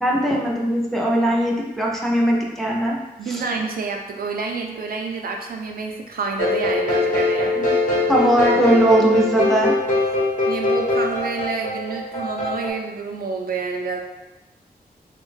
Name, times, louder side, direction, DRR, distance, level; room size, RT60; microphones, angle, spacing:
voice 1, 0.0-3.0 3.2-3.4 7.6-7.7 8.1-9.7, right 1 dB, ahead, -3 dB, 0.5 m, -19 dB
voice 2, 3.2-7.5 10.5-14.0, right 4 dB, 65° right, 2 dB, 0.4 m, -28 dB
sound 1, 6.4-12.7, left 2 dB, 55° left, 0.9 m, -22 dB
3.4 x 2.2 x 3.2 m, 1.0 s
wide cardioid pair, 140°, 16 cm